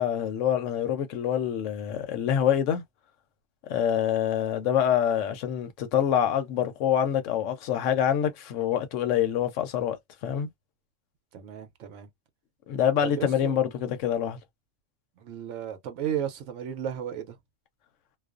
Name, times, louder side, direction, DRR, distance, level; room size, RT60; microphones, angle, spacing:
voice 1, 0.0-2.8 3.7-10.0 10.2-10.5 12.7-14.4, left 9 dB, 75° left, 0.9 m, -26 dB
voice 2, 11.3-12.1 13.0-13.6 15.2-17.4, right 9 dB, 70° right, 0.9 m, -34 dB
2.4 x 2.2 x 2.3 m
omnidirectional pair, 1.3 m